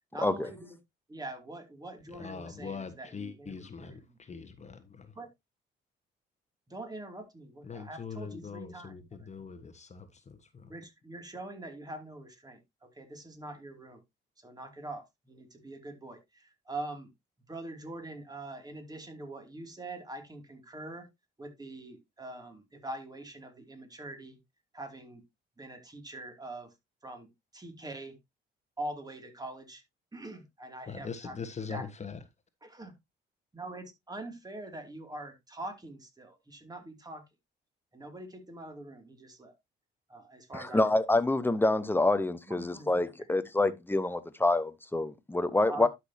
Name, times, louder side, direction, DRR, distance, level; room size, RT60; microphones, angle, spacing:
voice 1, 0.1-0.8 1.1-4.1 5.1-5.3 6.7-9.3 10.6-14.0 14.4-17.1 17.5-21.1 21.4-24.4 24.7-25.2 25.6-26.7 27.0-28.1 28.8-29.8 30.1-31.4 31.7-31.8 32.6-32.9 33.5-37.2 37.9-39.5 40.1-40.9 42.5-42.9 45.7-45.9, right 2 dB, 20° right, 2.7 m, -43 dB
voice 2, 2.1-5.1 7.6-10.7 30.9-32.2, left 5 dB, 35° left, 1.3 m, -42 dB
voice 3, 40.5-45.9, left 2 dB, 10° left, 1.0 m, -27 dB
11.5 x 6.1 x 2.8 m
cardioid pair, 90°, 20 cm